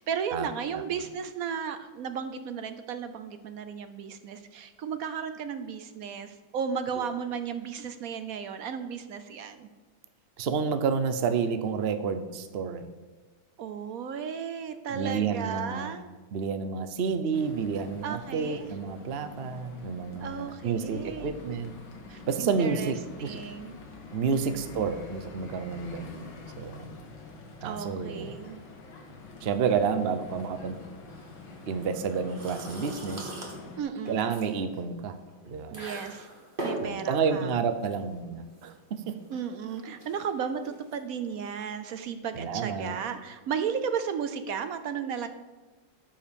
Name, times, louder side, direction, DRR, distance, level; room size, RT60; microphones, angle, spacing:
voice 1, 0.0-9.7 13.6-16.1 18.0-18.7 20.2-21.4 22.1-22.9 23.2-23.7 24.3-24.8 27.6-28.6 33.8-34.3 35.7-36.3 36.6-37.6 39.3-45.3, right 7 dB, 60° right, 10 dB, 0.9 m, -34 dB
voice 2, 10.4-12.9 14.9-15.9 16.3-21.7 22.3-23.4 24.1-26.9 27.6-28.4 29.4-30.8 31.7-33.3 34.1-35.2 35.5-35.8 36.8-39.1 42.3-42.9, right 6 dB, 80° right, 9 dB, 0.5 m, -30 dB
sound 1, 17.3-33.8, left 3 dB, 75° left, 2.2 m, -46 dB
sound 2, 31.1-42.0, right 1 dB, 25° right, 2.2 m, -42 dB
13.5 x 5.3 x 7.0 m, 1.3 s
omnidirectional pair, 2.2 m